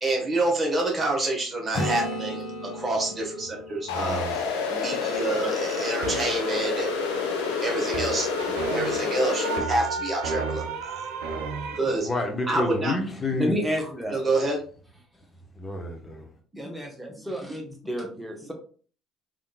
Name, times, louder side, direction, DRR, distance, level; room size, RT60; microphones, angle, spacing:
voice 1, 0.0-6.9 7.6-8.3 8.7-11.1 11.7-12.1 12.5-12.9 14.1-14.6 17.1-17.2, right 2 dB, 25° right, 1.3 m, -28 dB
Acoustic guitar / Strum, 1.7-5.5 10.3-10.4, equal, 60° left, 1.4 m, -35 dB
sound 1, 3.9-9.6, left 5 dB, 80° left, 0.5 m, -28 dB
voice 2, 3.9-4.3 12.0-13.5 15.6-16.2, left 1 dB, 25° left, 0.7 m, -29 dB
sound 2, 6.0-11.8, right 4 dB, 75° right, 0.4 m, -33 dB
voice 3, 13.4-14.2 16.6-18.5, equal, 5° right, 1.0 m, -30 dB
3.6 x 2.5 x 2.3 m
hypercardioid pair, 60°, 0 cm